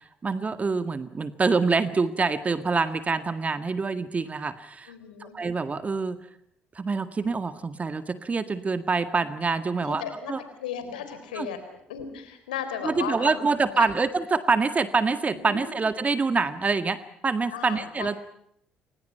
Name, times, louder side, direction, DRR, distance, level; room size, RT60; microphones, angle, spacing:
voice 1, 0.2-4.9 5.2-6.2 6.8-10.4 11.4-11.5 12.8-17.0 17.2-18.2, right 4 dB, 30° right, 11 dB, 1.8 m, -26 dB
voice 2, 4.9-5.3 9.8-10.3 10.6-11.6 11.9-13.9 15.4-15.7 17.5-18.2, left 8 dB, 80° left, 9 dB, 4.0 m, -35 dB
29.0 x 24.5 x 5.7 m, 0.71 s
figure-of-eight pair, 50°, 5 cm